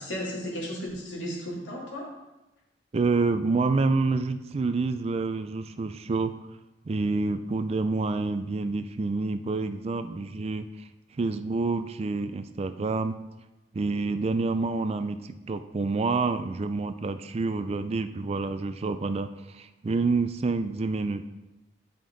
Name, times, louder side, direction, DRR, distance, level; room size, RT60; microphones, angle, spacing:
voice 1, 0.0-2.1, equal, 90° left, -4 dB, 2.4 m, -34 dB
voice 2, 2.9-6.3 6.9-10.7 11.1-13.2 13.7-21.3, right 3 dB, 35° right, 10 dB, 0.4 m, -28 dB
9.7 x 5.3 x 3.9 m, 1.0 s
head